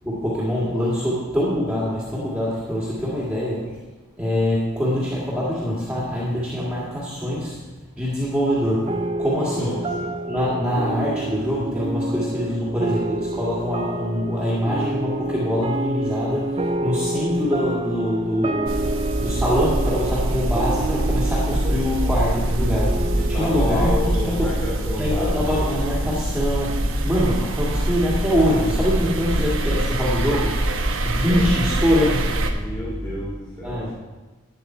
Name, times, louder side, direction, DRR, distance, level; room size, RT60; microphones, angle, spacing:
voice 1, 0.0-3.8 4.2-7.6 8.0-9.8 10.3-18.8 19.2-23.9 24.2-24.6 25.0-32.7 33.6-33.9, equal, 5° right, -7 dB, 2.2 m, -24 dB
sound 1, 8.9-25.7, right 2 dB, 25° right, 0.5 m, -29 dB
voice 2, 9.5-10.1 23.1-25.4 26.0-26.1 28.3-29.1 31.3-31.5 32.5-33.8, left 1 dB, 20° left, -9 dB, 3.1 m, -30 dB
sound 2, 18.6-32.5, right 1 dB, 65° right, 1.1 m, -24 dB
12.0 x 9.1 x 4.6 m, 1.2 s
head